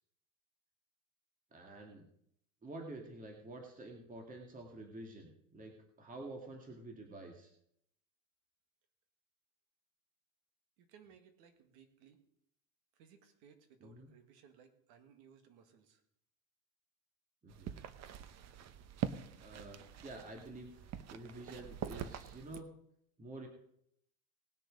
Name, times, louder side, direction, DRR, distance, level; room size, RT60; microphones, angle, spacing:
voice 1, 1.5-2.0 2.6-7.5 13.8-14.1 17.4-17.7 19.4-22.7 23.2-23.5, right 2 dB, 20° right, 2 dB, 2.1 m, -49 dB
voice 2, 10.8-12.2 12.9-16.0, right 7 dB, 70° right, 7 dB, 2.1 m, -62 dB
sound 1, 17.5-22.6, right 9 dB, 45° right, 0.9 m, -44 dB
19.0 x 6.7 x 5.2 m, 0.74 s
supercardioid pair, 115°, 39 cm